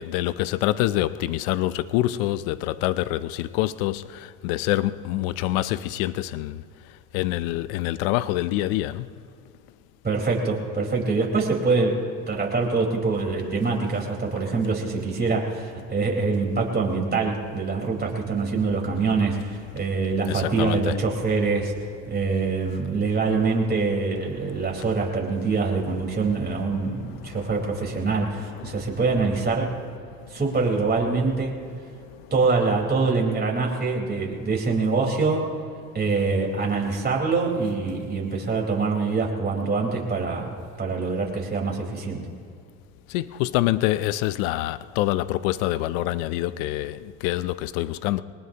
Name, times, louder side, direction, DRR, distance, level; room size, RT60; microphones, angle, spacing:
voice 1, 0.0-9.1 20.3-21.0 24.5-24.6 26.7-27.5 28.5-28.9 30.2-30.3 32.2-32.3 43.1-48.2, left 15 dB, 85° left, 0.6 m, -26 dB
voice 2, 10.0-21.7 22.1-29.8 30.3-31.5 32.3-35.6 35.9-42.3, right 4 dB, 25° right, 4.3 m, -24 dB
23.5 x 19.5 x 2.9 m
supercardioid pair, 90°, 40 cm